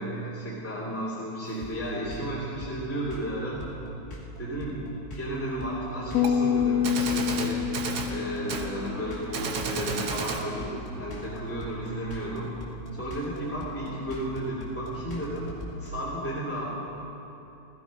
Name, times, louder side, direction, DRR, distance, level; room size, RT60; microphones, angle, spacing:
voice 1, 0.0-3.6 4.4-4.9 5.1-7.7 8.1-12.5 12.9-15.5 15.8-16.7, right 1 dB, 5° left, -9 dB, 1.9 m, -33 dB
sound 1, 1.6-15.9, left 1 dB, 30° left, 2.4 m, -41 dB
sound 2, 6.1-9.6, left 8 dB, 85° left, 2.6 m, -27 dB
Gunshot gunfire, 6.2-6.3 6.8-8.1 8.5-8.7 9.3-10.5, right 5 dB, 75° right, 1.4 m, -32 dB
16.0 x 16.0 x 5.4 m, 3.0 s
omnidirectional pair, 4.3 m